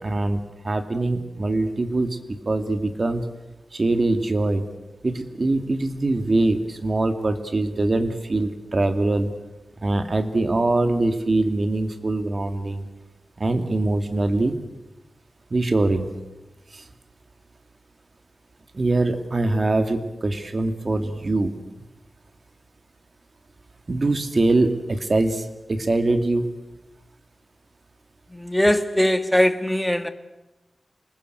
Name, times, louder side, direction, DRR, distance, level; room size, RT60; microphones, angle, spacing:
voice 1, 0.0-3.3 3.7-4.7 5.0-9.3 9.8-12.9 13.4-14.6 15.5-16.1 16.7-16.9 18.7-21.6 23.9-26.5, right 2 dB, 45° right, 2.4 m, -23 dB
voice 2, 28.3-30.1, left 1 dB, 5° left, 1.5 m, -20 dB
28.0 x 20.0 x 8.2 m
wide cardioid pair, 105°, 0 cm